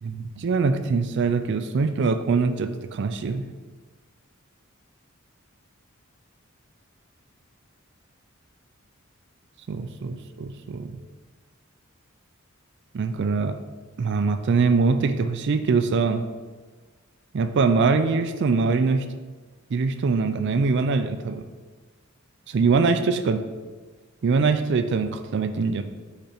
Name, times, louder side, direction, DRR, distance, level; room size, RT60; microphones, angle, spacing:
voice 1, 0.0-3.5 9.7-11.0 12.9-13.5 14.0-16.2 17.3-19.0 19.7-21.4 22.5-23.4 24.2-25.8, right 4 dB, 55° right, 9 dB, 0.4 m, -23 dB
5.4 x 5.1 x 4.4 m, 1.4 s
head